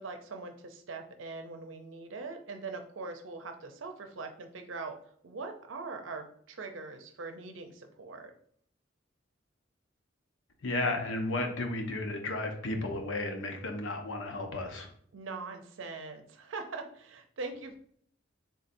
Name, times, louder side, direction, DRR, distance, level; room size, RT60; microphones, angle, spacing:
voice 1, 0.0-4.9 5.2-8.3 15.1-17.8, right 3 dB, 80° right, 6 dB, 0.6 m, -42 dB
voice 2, 10.6-14.9, left 2 dB, 75° left, 4 dB, 0.7 m, -33 dB
4.0 x 3.8 x 2.6 m, 0.62 s
head